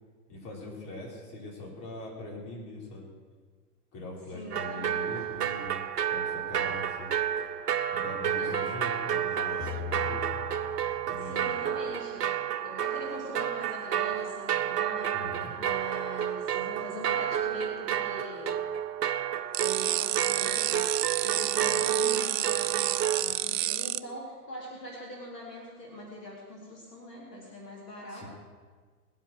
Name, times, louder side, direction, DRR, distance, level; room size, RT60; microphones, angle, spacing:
voice 1, 0.3-3.1 3.9-5.8 6.1-7.1 7.9-10.3 11.1-11.6 15.1-15.5 28.1-28.3, left 1 dB, 45° left, -3 dB, 5.1 m, -42 dB
voice 2, 4.3-5.1 8.3-8.7 11.2-18.5 19.6-28.3, equal, 80° left, -3 dB, 4.2 m, -42 dB
sound 1, 4.5-23.2, right 9 dB, 75° right, 0.9 m, -31 dB
sound 2, 9.6-11.8, left 11 dB, 15° left, 0.4 m, -40 dB
sound 3, 19.5-24.0, right 14 dB, 55° right, 0.5 m, -29 dB
20.0 x 8.2 x 6.4 m, 1.5 s
figure-of-eight pair, 100°, 47 cm